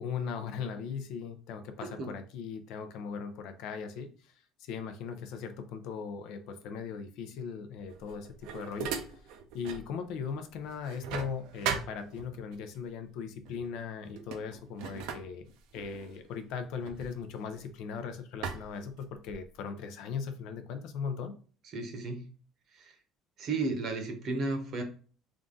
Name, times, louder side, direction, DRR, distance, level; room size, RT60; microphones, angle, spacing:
voice 1, 0.0-4.3 4.6-8.9 9.5-15.5 15.7-21.3, left 6 dB, 65° left, 8 dB, 0.6 m, -38 dB
sound 1, 7.9-9.9 10.3-12.6 13.5-13.7 14.0-17.9 18.4-19.6, right 7 dB, 75° right, 0.6 m, -39 dB
voice 2, 21.7-22.2 22.7-22.9 23.4-24.8, right 3 dB, 45° right, 5 dB, 0.8 m, -33 dB
3.6 x 2.6 x 3.7 m, 0.41 s
cardioid pair, 160°, 0 cm